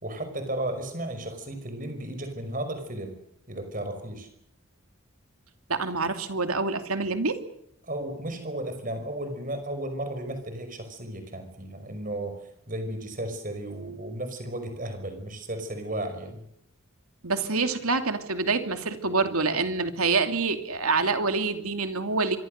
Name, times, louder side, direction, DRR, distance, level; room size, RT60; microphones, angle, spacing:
voice 1, 0.0-3.1 3.5-4.3 7.8-12.4 12.7-16.4, right 1 dB, 40° right, 8 dB, 5.4 m, -34 dB
voice 2, 5.7-7.4 17.2-22.4, right 4 dB, 85° right, 7 dB, 2.7 m, -26 dB
25.5 x 24.5 x 6.6 m, 0.76 s
head